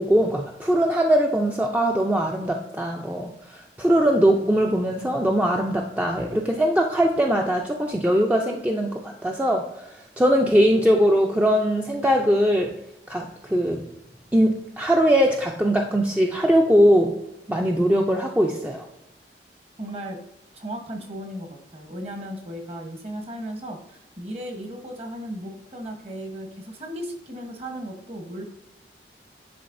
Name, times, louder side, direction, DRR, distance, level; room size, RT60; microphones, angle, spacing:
voice 1, 0.0-12.7 13.1-13.8 14.3-17.2 17.5-18.9, equal, 10° right, 1 dB, 0.4 m, -21 dB
voice 2, 19.8-20.2 20.5-28.4, equal, 35° right, 3 dB, 1.0 m, -36 dB
10.0 x 4.1 x 2.5 m, 0.88 s
head